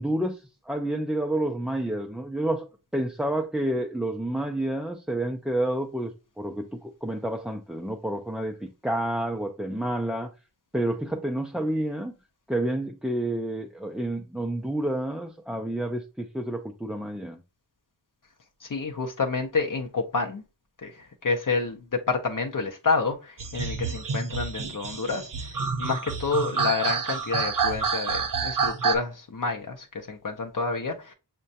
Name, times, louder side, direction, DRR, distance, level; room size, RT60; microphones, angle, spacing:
voice 1, 0.0-2.7 2.9-10.3 10.7-12.1 12.5-17.4, right 1 dB, ahead, 0.3 m, -29 dB
voice 2, 18.6-20.4 20.8-21.8 22.1-25.3 25.8-31.1, left 4 dB, 50° left, 0.6 m, -29 dB
sound 1, 23.4-29.0, right 5 dB, 55° right, 0.6 m, -28 dB
6.1 x 2.2 x 2.6 m
wide cardioid pair, 45°, 40 cm